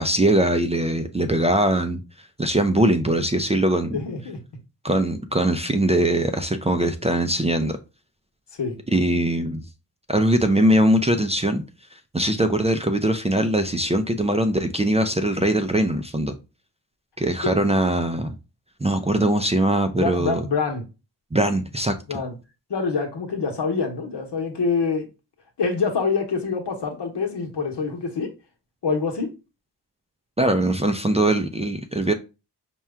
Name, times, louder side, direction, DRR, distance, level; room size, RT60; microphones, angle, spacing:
voice 1, 0.0-2.0 2.4-4.0 4.8-7.8 8.9-9.6 10.1-11.6 12.1-16.4 17.2-18.3 18.8-20.4 21.3-22.0 30.4-32.1, right 1 dB, 15° right, 0.4 m, -21 dB
voice 2, 3.9-4.4 8.6-8.8 17.4-17.6 19.9-20.8 22.1-22.4 22.7-25.1 25.6-28.3 28.8-29.3, left 5 dB, 75° left, 1.0 m, -25 dB
4.4 x 2.2 x 3.4 m
cardioid pair, 45°, 42 cm